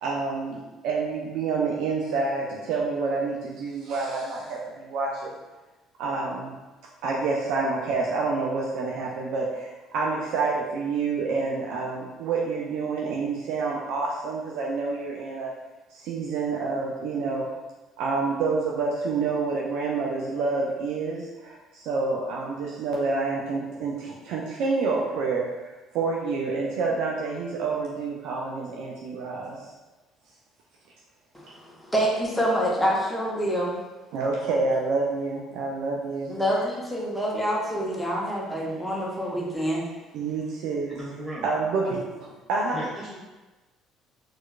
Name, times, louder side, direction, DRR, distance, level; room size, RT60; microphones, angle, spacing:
voice 1, 0.0-5.3 6.0-6.6 7.0-15.5 15.9-17.5 18.0-29.6 34.1-36.3 40.1-40.9 41.4-42.8, right 4 dB, 65° right, -2 dB, 0.4 m, -28 dB
voice 2, 31.3-33.7 36.3-39.8, equal, 5° left, -4 dB, 1.0 m, -26 dB
voice 3, 40.9-41.5 42.7-43.2, right 1 dB, 20° right, -6 dB, 1.3 m, -36 dB
4.3 x 2.4 x 2.2 m, 1.1 s
hypercardioid pair, 55°, 0 cm